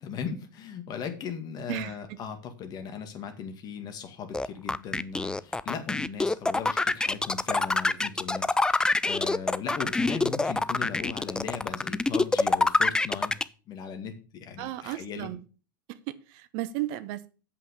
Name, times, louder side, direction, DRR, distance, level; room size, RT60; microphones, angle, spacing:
voice 1, 0.0-13.3 13.7-15.3, left 6 dB, 40° left, 2.0 m, -38 dB
voice 2, 1.7-2.2 14.6-15.5 15.9-17.3, right 15 dB, 50° right, 0.9 m, -35 dB
sound 1, 4.3-13.4, left 2 dB, 5° left, 0.4 m, -25 dB
7.9 x 5.7 x 6.6 m
figure-of-eight pair, 85°, 11 cm